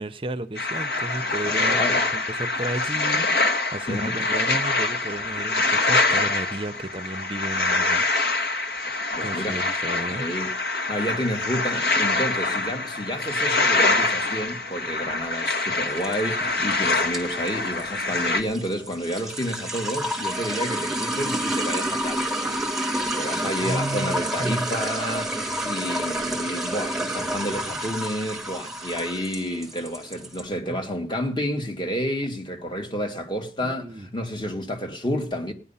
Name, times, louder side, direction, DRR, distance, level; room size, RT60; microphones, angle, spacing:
voice 1, 0.0-8.1 8.4-8.6 9.2-10.3 23.3-24.7 30.7-30.8 33.6-34.1, right 2 dB, 30° right, 0.7 m, -33 dB
sound 1, 0.6-18.4, left 3 dB, 65° left, 1.4 m, -25 dB
voice 2, 1.4-2.0 3.9-4.2 9.2-9.6 10.1-22.6 23.0-35.5, equal, 25° left, 1.9 m, -30 dB
sound 2, 15.9-30.4, right 1 dB, ahead, 1.9 m, -29 dB
17.5 x 10.0 x 5.6 m
head